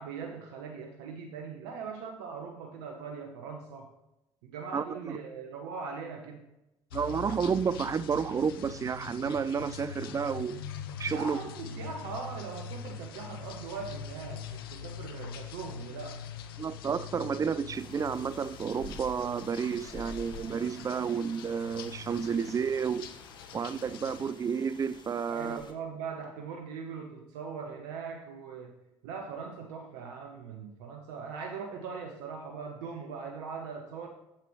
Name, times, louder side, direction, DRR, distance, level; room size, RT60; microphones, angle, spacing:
voice 1, 0.0-3.9 4.4-6.5 11.1-16.2 25.3-28.8 29.0-34.1, right 5 dB, 80° right, 0.8 m, -40 dB
voice 2, 4.7-5.2 6.9-10.6 11.0-11.4 16.6-23.1 23.5-25.6, right 6 dB, 30° right, 0.3 m, -31 dB
sound 1, 6.9-24.3, left 7 dB, 90° left, 0.5 m, -43 dB
sound 2, 17.7-25.7, left 3 dB, 40° left, 1.2 m, -50 dB
8.6 x 7.7 x 3.0 m
hypercardioid pair, 55°, 12 cm